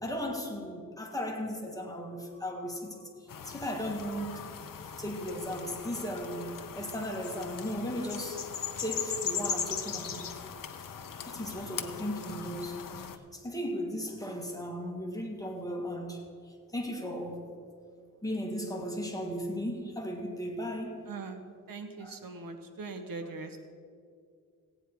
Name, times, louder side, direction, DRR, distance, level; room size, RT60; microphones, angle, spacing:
voice 1, 0.0-3.1 3.4-4.4 5.0-8.5 8.8-10.3 11.3-12.8 13.3-16.2 16.7-17.4 18.2-21.1 22.0-22.2, equal, 10° left, 1.7 m, -36 dB
sound 1, 3.3-13.2, left 7 dB, 75° left, 0.8 m, -39 dB
voice 2, 21.1-21.4 21.7-23.6, right 3 dB, 80° right, 1.1 m, -41 dB
16.5 x 9.1 x 4.6 m
wide cardioid pair, 130°, 33 cm